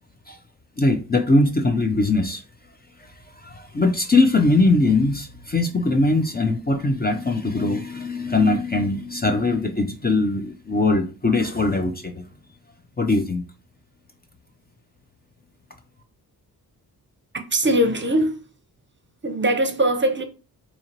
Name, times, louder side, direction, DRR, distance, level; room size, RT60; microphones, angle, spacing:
voice 1, 0.8-2.4 3.0-3.1 3.4-12.2 13.0-13.4, left 2 dB, 25° left, 0.5 m, -21 dB
voice 2, 17.3-18.4 19.2-20.2, right 1 dB, 30° right, 0.7 m, -21 dB
4.2 x 2.9 x 2.8 m
cardioid pair, 75°, 39 cm